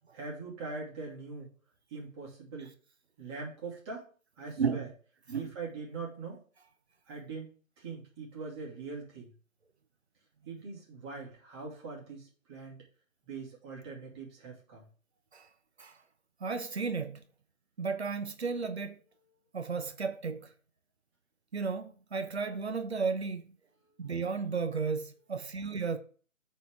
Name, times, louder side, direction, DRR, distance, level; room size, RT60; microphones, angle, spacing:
voice 1, 0.1-1.5 1.9-2.7 3.2-4.1 4.4-4.9 5.3-6.4 7.1-7.5 7.8-9.3 10.5-12.8 13.2-14.9 23.8-24.1, right 4 dB, 20° right, 2.5 m, -42 dB
voice 2, 16.4-17.2 17.8-19.0 19.5-20.5 21.5-23.4 24.0-26.0, right 5 dB, 50° right, 1.0 m, -33 dB
12.5 x 4.3 x 3.7 m
figure-of-eight pair, 155°, 41 cm